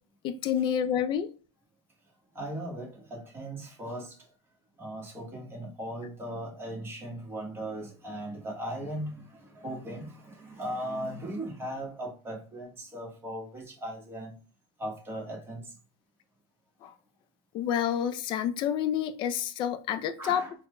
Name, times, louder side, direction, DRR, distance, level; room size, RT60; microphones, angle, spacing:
voice 1, 0.2-1.3 16.8-16.9 17.5-20.5, left 9 dB, 35° left, 0.4 m, -29 dB
voice 2, 2.3-4.2 4.8-14.3 14.8-15.6 20.2-20.5, right 1 dB, 15° right, 1.1 m, -38 dB
3.9 x 2.1 x 3.1 m
supercardioid pair, 135°, 14 cm